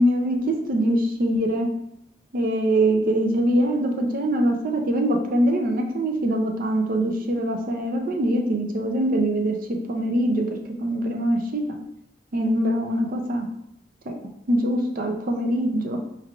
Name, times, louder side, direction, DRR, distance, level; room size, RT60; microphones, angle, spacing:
voice 1, 0.0-1.7 2.3-9.6 9.9-11.8 12.3-13.5 14.1-14.2 14.5-16.0, right 1 dB, 50° right, 3 dB, 0.5 m, -23 dB
4.5 x 3.3 x 2.4 m, 0.79 s
head